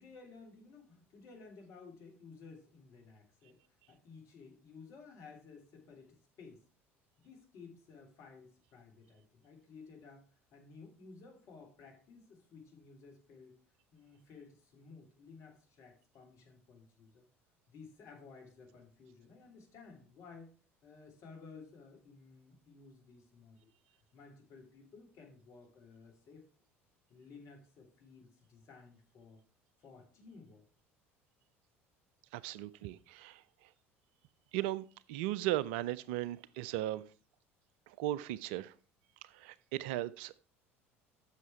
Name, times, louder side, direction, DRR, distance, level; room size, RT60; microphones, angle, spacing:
voice 1, 0.0-6.6 7.2-10.3 10.5-13.6 13.9-17.3 17.7-20.5 20.8-23.7 24.1-26.5 27.1-29.4 29.8-30.6, left 4 dB, 45° left, 1 dB, 2.8 m, -55 dB
voice 2, 32.3-33.4 34.5-37.0 38.0-38.7 39.3-40.4, right 14 dB, 60° right, 19 dB, 0.4 m, -37 dB
8.2 x 6.4 x 4.5 m, 0.38 s
figure-of-eight pair, 65°, 7 cm